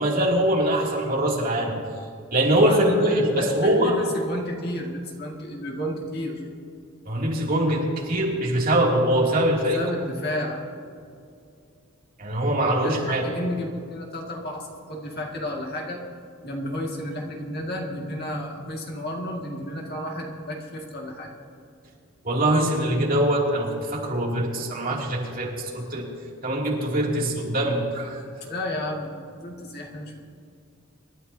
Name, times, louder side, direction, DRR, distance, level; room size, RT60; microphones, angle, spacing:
voice 1, 0.0-1.8 2.3-4.0 7.0-9.8 12.2-13.3 22.2-26.1 26.4-28.2, right 1 dB, 45° right, -3 dB, 2.8 m, -23 dB
voice 2, 2.6-6.4 9.7-10.6 12.7-16.0 16.4-21.3 28.4-30.2, left 1 dB, 50° left, -1 dB, 2.1 m, -32 dB
26.5 x 12.5 x 2.8 m, 2.4 s
head